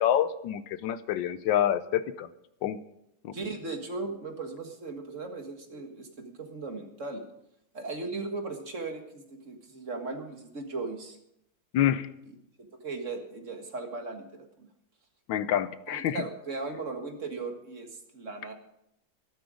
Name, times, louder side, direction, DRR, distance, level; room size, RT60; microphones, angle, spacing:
voice 1, 0.0-2.3 2.6-2.8 3.2-3.3 11.7-12.1 15.3-16.2, left 10 dB, 80° left, 14 dB, 1.4 m, -27 dB
voice 2, 3.3-7.2 7.7-11.2 12.3-12.4 12.8-14.7 15.9-18.5, right 3 dB, 40° right, 4 dB, 1.9 m, -37 dB
13.5 x 12.5 x 5.0 m, 0.79 s
omnidirectional pair, 2.1 m